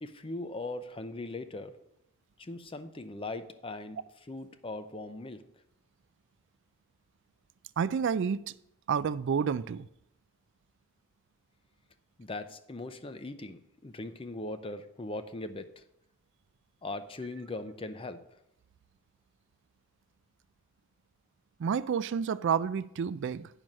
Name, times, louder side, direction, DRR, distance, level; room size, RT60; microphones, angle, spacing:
voice 1, 0.0-1.8 2.4-5.4 12.2-15.8 16.8-18.2, left 2 dB, 25° left, 0.5 m, -40 dB
voice 2, 7.8-8.4 8.9-9.9 21.6-23.5, right 6 dB, 55° right, 0.3 m, -29 dB
8.9 x 6.2 x 5.3 m
head